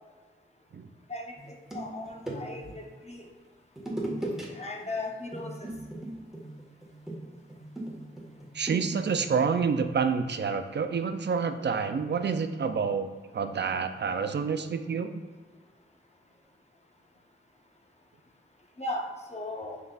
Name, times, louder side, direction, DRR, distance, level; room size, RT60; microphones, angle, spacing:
voice 1, 1.1-3.2 4.5-5.7 18.8-19.1 19.3-19.8, left 2 dB, 30° left, 0 dB, 0.8 m, -37 dB
sound 1, 1.4-2.8 3.8-4.5 4.8-5.0 5.3-9.4, right 1 dB, ahead, 1.5 m, -38 dB
voice 2, 8.5-13.1 13.3-15.2, right 5 dB, 55° right, 8 dB, 0.4 m, -28 dB
5.1 x 4.0 x 2.4 m, 1.4 s
cardioid pair, 45°, 21 cm